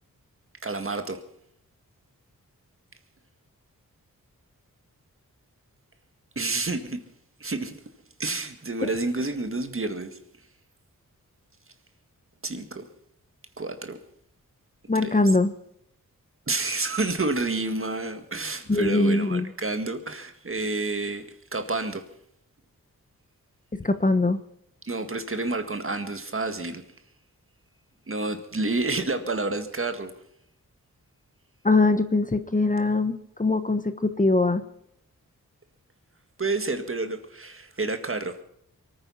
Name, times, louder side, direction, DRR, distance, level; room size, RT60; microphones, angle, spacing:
voice 1, 0.6-1.2 6.4-7.0 7.4-7.8 8.2-10.2 12.4-12.9 13.6-14.0 14.9-15.3 16.5-22.0 24.8-26.8 28.1-30.1 36.4-38.3, right 3 dB, 40° right, 1.9 m, -29 dB
voice 2, 14.9-15.5 18.7-19.5 23.7-24.4 31.6-34.6, left 2 dB, 25° left, 1.1 m, -22 dB
23.5 x 9.6 x 5.7 m
cardioid pair, 55°, 33 cm